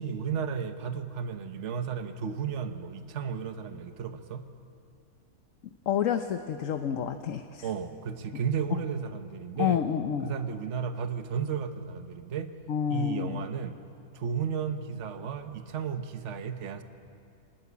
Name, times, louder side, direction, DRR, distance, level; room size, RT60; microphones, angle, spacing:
voice 1, 0.0-4.4 7.6-9.8 10.2-12.5 12.9-13.8 14.1-16.8, right 7 dB, 60° right, 8 dB, 1.4 m, -33 dB
voice 2, 5.9-7.7 9.6-10.3 12.7-13.4, left 8 dB, 65° left, 7 dB, 1.2 m, -29 dB
26.0 x 20.0 x 8.3 m, 2.7 s
omnidirectional pair, 1.5 m